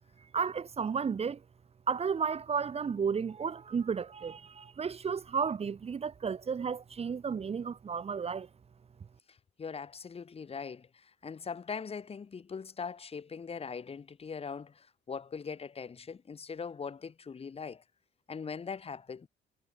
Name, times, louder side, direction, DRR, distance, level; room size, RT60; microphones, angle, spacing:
voice 1, 0.3-1.4 1.9-8.5, right 6 dB, 35° right, 2.0 m, -33 dB
voice 2, 9.3-17.8 18.3-19.3, left 5 dB, 30° left, 5.5 m, -41 dB
cardioid pair, 140°, 19 cm